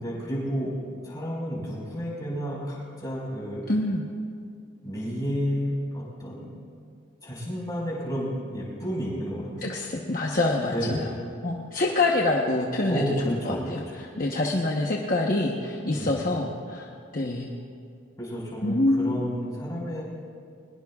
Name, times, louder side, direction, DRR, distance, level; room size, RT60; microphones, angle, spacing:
voice 1, 0.0-3.7 4.8-6.5 7.2-9.7 10.7-11.1 12.9-14.0 15.9-16.3 18.2-20.0, equal, 20° left, -5 dB, 4.9 m, -31 dB
voice 2, 3.7-4.0 9.6-11.1 11.4-16.9 17.1-17.5 18.6-19.0, left 2 dB, 45° left, -1 dB, 1.0 m, -26 dB
22.5 x 20.5 x 2.4 m, 2.3 s
head